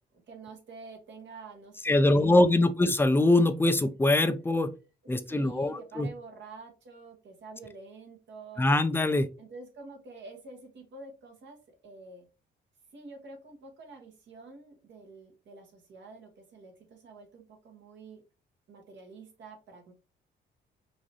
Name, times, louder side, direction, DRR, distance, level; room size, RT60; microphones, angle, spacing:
voice 1, 0.3-2.7 5.3-8.8 9.4-12.3 12.9-18.2 18.7-19.9, right 3 dB, 65° right, 3 dB, 1.4 m, -48 dB
voice 2, 1.8-4.7 5.1-6.1 8.6-9.3, left 2 dB, 10° left, 10 dB, 0.5 m, -23 dB
3.8 x 2.6 x 3.0 m, 0.31 s
cardioid pair, 90°, 20 cm